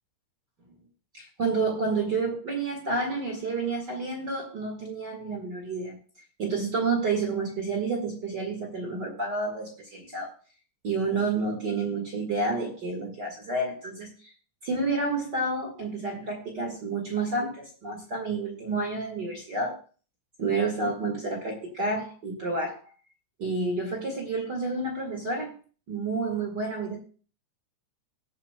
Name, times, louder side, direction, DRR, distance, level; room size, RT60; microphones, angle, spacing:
voice 1, 1.1-6.0 6.4-10.3 10.8-14.3 14.6-19.8 20.4-22.8 23.4-25.5 25.9-27.0, right 3 dB, 40° right, 1 dB, 1.9 m, -29 dB
20.0 x 7.2 x 2.2 m, 0.39 s
omnidirectional pair, 3.7 m